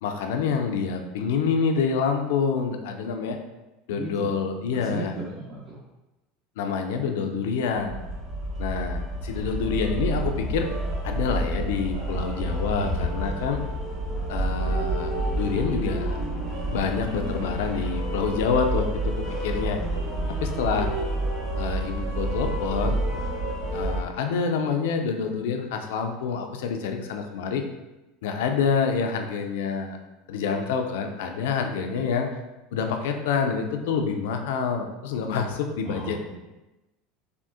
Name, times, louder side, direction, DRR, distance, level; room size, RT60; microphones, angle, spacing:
voice 1, 0.0-3.4 3.9-5.1 6.6-8.0 8.6-10.7 11.0-13.6 14.3-16.2 16.7-19.8 20.3-20.9 21.6-23.0 23.7-27.6 28.2-30.0 30.3-32.3 32.7-36.2, left 5 dB, 70° left, 5 dB, 0.3 m, -27 dB
voice 2, 3.9-4.3 4.7-5.8 35.8-36.4, right 3 dB, 50° right, -5 dB, 0.7 m, -36 dB
sound 1, 7.8-24.0, right 1 dB, 25° right, 1.3 m, -29 dB
3.6 x 2.3 x 2.3 m, 1.0 s
hypercardioid pair, 80°, 0 cm